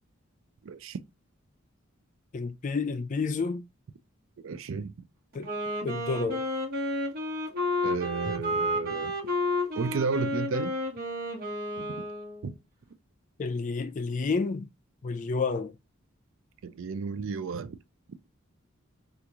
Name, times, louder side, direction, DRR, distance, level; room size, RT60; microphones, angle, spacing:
voice 1, 0.6-1.0 4.4-4.9 7.8-9.1 9.8-10.7 11.8-12.0 12.4-12.6 16.6-17.8, right 5 dB, 65° right, 0.4 m, -33 dB
voice 2, 2.3-3.6 5.3-5.5 5.8-6.4 13.4-14.7 15.0-15.7, left 4 dB, 35° left, 0.4 m, -30 dB
Wind instrument woodwind instrument, 5.3-12.5, left 1 dB, 45° right, 1.2 m, -31 dB
2.9 x 2.5 x 3.5 m
head